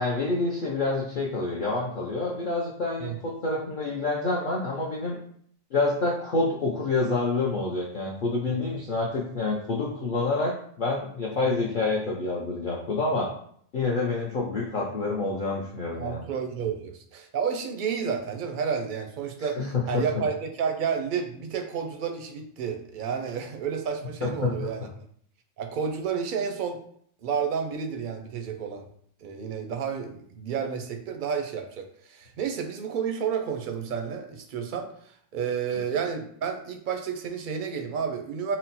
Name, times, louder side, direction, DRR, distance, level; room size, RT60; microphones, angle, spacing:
voice 1, 0.0-5.2 5.7-13.3 13.7-16.2 19.4-20.0 24.2-24.5, left 3 dB, 50° left, -4 dB, 0.7 m, -27 dB
voice 2, 16.0-19.6 19.9-24.9 25.6-26.8 27.2-28.9 29.2-38.6, right 6 dB, 60° right, 4 dB, 0.5 m, -31 dB
4.2 x 2.0 x 4.0 m, 0.63 s
omnidirectional pair, 1.4 m